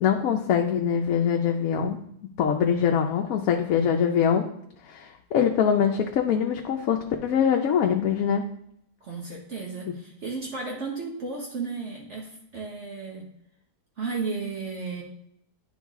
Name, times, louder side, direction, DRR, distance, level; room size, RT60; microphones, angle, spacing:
voice 1, 0.0-2.0 2.4-4.5 4.9-8.5, left 7 dB, 75° left, 3 dB, 1.0 m, -23 dB
voice 2, 9.0-13.3 14.0-15.0, right 4 dB, 55° right, -1 dB, 1.3 m, -34 dB
10.0 x 3.9 x 3.6 m, 0.74 s
omnidirectional pair, 1.5 m